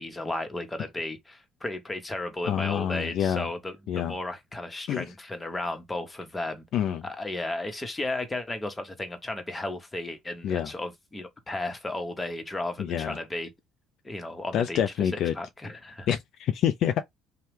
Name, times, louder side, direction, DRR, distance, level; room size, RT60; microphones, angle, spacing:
voice 1, 0.0-6.6 7.0-13.5 14.0-14.8 15.3-16.1, left 2 dB, 20° left, 1.0 m, -34 dB
voice 2, 2.4-3.5 3.9-4.1 4.9-5.0 6.7-7.1 10.4-10.7 12.8-13.2 14.5-15.3 16.1-17.0, left 9 dB, 65° left, 0.3 m, -27 dB
2.8 x 2.2 x 3.3 m
supercardioid pair, 65°, 0 cm